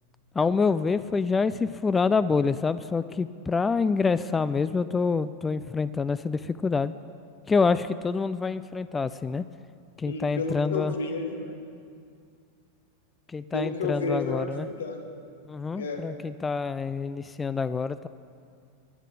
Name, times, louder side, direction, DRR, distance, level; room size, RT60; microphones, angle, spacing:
voice 1, 0.4-6.9 7.5-9.5 10.0-10.9 13.3-14.7 15.5-18.1, left 4 dB, 15° left, 15 dB, 0.3 m, -26 dB
voice 2, 10.0-11.6 13.5-15.1 15.7-16.0, left 3 dB, 65° left, 4 dB, 1.6 m, -31 dB
12.5 x 8.3 x 8.0 m, 2.3 s
figure-of-eight pair, 90°, 0 cm